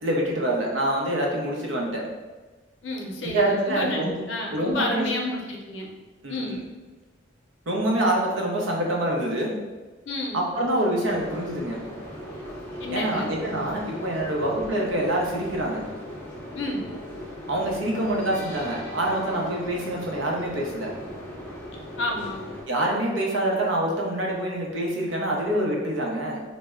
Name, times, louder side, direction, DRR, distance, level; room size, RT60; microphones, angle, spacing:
voice 1, 0.0-2.0 3.2-4.2 4.5-5.1 6.2-6.6 7.7-9.5 10.3-11.8 12.9-15.9 17.5-20.9 22.7-26.4, right 1 dB, 85° right, -1 dB, 0.6 m, -26 dB
voice 2, 2.8-5.9 6.3-6.6 10.1-10.4 12.8-13.3 16.5-16.8 22.0-22.4, left 2 dB, 75° left, 1 dB, 0.5 m, -30 dB
sound 1, 11.1-22.6, left 1 dB, 10° left, 0.5 m, -38 dB
2.1 x 2.0 x 3.5 m, 1.2 s
head